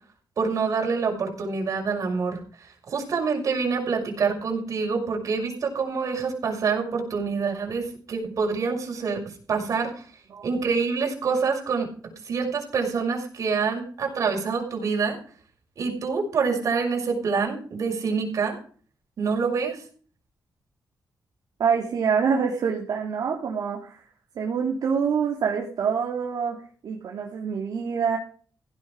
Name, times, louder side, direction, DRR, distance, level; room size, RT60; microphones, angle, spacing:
voice 1, 0.4-10.0 10.4-11.9 12.3-15.2 15.8-18.6 19.2-19.8, right 5 dB, 55° right, 2 dB, 6.1 m, -26 dB
voice 2, 21.6-24.1 24.3-26.6 26.8-28.2, right 6 dB, 70° right, -1 dB, 3.0 m, -26 dB
16.5 x 9.7 x 4.8 m, 0.42 s
wide cardioid pair, 180°, 7 cm